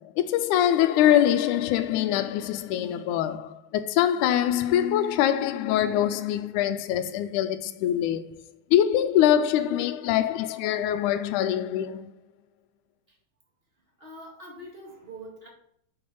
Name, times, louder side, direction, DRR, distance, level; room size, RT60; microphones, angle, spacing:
voice 1, 0.0-8.3 8.7-12.1, left 11 dB, 80° left, 2.0 m, -24 dB
voice 2, 14.0-15.5, right 1 dB, 20° right, 1.9 m, -44 dB
6.8 x 5.0 x 5.4 m
omnidirectional pair, 3.6 m